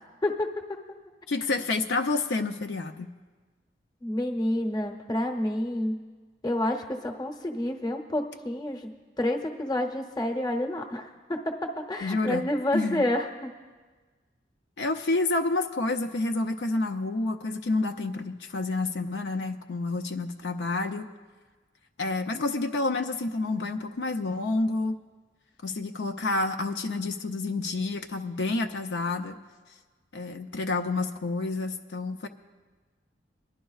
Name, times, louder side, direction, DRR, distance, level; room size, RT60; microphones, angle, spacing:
voice 1, 0.2-0.8 4.0-6.0 6.4-8.9 9.2-13.5, left 1 dB, 20° left, 3 dB, 0.9 m, -29 dB
voice 2, 1.3-3.1 12.0-12.4 12.7-13.1 14.8-21.1 22.0-24.9 25.6-29.4 30.1-32.3, left 3 dB, 75° left, 5 dB, 0.5 m, -29 dB
23.0 x 11.0 x 2.4 m, 1.4 s
head